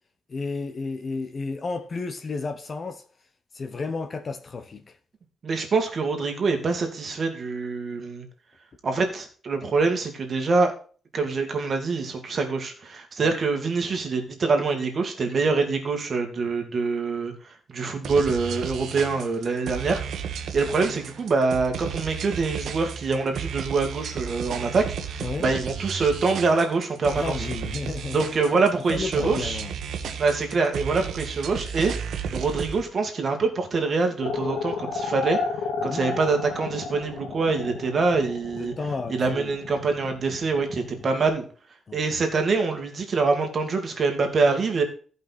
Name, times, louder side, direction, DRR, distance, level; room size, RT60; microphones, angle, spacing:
voice 1, 0.3-3.0 3.5-5.0 13.2-13.4 25.2-25.5 27.1-28.2 28.9-29.7 35.8-36.2 38.5-39.5 41.9-42.0, left 4 dB, 30° left, 0.9 m, -32 dB
voice 2, 5.4-8.3 8.8-10.7 11.1-17.3 17.7-20.0 20.3-27.5 28.1-29.6 30.2-35.4 35.8-38.7 39.1-41.5 41.9-44.8, right 4 dB, 35° right, 2.2 m, -25 dB
sound 1, 18.0-32.8, right 7 dB, 65° right, 1.3 m, -33 dB
sound 2, 34.2-41.3, left 5 dB, 75° left, 2.2 m, -32 dB
15.0 x 5.6 x 4.2 m
wide cardioid pair, 170°, 0 cm